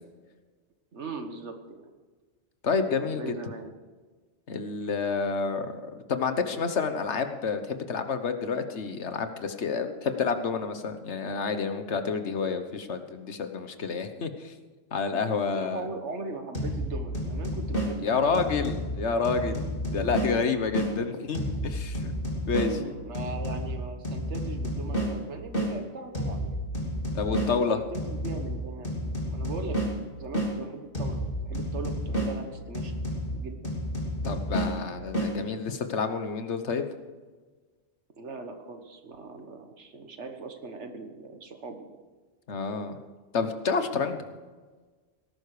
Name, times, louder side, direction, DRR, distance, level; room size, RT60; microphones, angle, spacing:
voice 1, 0.9-1.9 2.9-3.7 15.5-18.4 19.9-20.2 22.5-26.6 27.3-29.9 30.2-32.9 33.3-33.6 38.2-41.8, right 4 dB, 85° right, 6 dB, 1.8 m, -40 dB
voice 2, 2.6-3.3 4.5-14.5 14.9-15.9 18.0-19.7 19.9-22.1 22.4-22.9 27.1-27.8 34.2-36.9 42.5-43.0 43.3-44.2, left 5 dB, 80° left, 8 dB, 1.5 m, -29 dB
sound 1, 16.5-20.9 21.3-25.7 26.1-30.5 30.9-35.3, equal, 50° left, 3.1 m, -31 dB
18.5 x 11.5 x 5.0 m, 1.4 s
omnidirectional pair, 1.1 m